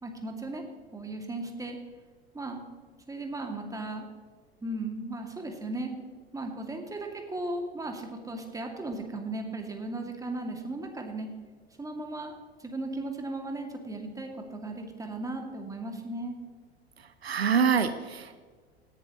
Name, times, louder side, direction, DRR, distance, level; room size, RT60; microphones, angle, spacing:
voice 1, 0.0-0.6 0.9-1.8 2.3-2.6 3.1-4.1 4.6-5.9 6.3-11.3 11.8-12.3 12.6-16.3, right 2 dB, 10° right, 3 dB, 2.4 m, -36 dB
voice 2, 17.0-18.4, right 6 dB, 80° right, 11 dB, 0.8 m, -26 dB
17.5 x 11.5 x 3.1 m, 1.5 s
figure-of-eight pair, 80°, 31 cm